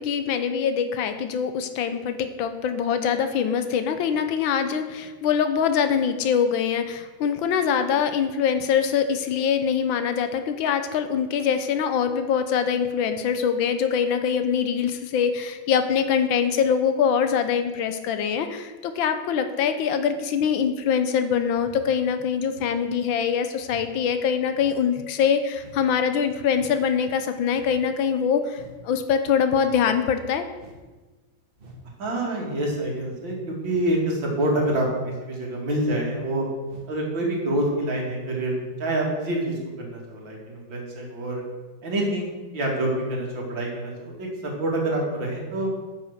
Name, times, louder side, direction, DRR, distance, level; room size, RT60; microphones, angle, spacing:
voice 1, 0.0-30.4, left 7 dB, 85° left, 9 dB, 1.5 m, -23 dB
sound 1, 21.5-21.9 22.5-22.8 23.6-23.9 24.5-24.8 25.5-25.9 26.5-26.8 27.5-27.8 28.5-28.8 29.6-29.8 30.5-30.9 31.6-31.8 32.6-32.9 33.6-33.9 34.6-34.9 35.7-36.0 36.6-36.9 37.6-37.7, right 1 dB, 35° right, 1.3 m, -48 dB
voice 2, 32.0-36.5 36.9-41.4 41.8-42.3 42.5-45.7, right 1 dB, 75° right, -2 dB, 2.9 m, -27 dB
8.9 x 6.0 x 6.6 m, 1.3 s
omnidirectional pair, 2.1 m